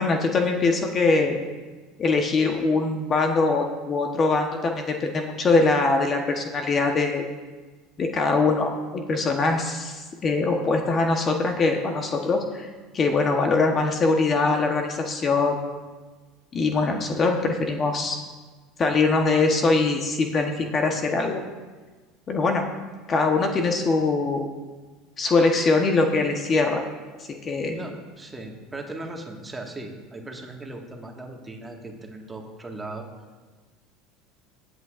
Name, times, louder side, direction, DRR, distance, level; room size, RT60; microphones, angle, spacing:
voice 1, 0.0-1.4 2.0-7.3 8.0-12.7 12.9-15.6 16.5-18.2 18.8-21.4 22.3-22.6 23.1-24.5 25.2-26.8 27.2-27.8, left 3 dB, 35° left, 3 dB, 1.2 m, -22 dB
voice 2, 27.7-33.0, right 2 dB, 15° right, 1 dB, 1.8 m, -38 dB
20.0 x 8.2 x 2.6 m, 1.4 s
supercardioid pair, 100°, 0 cm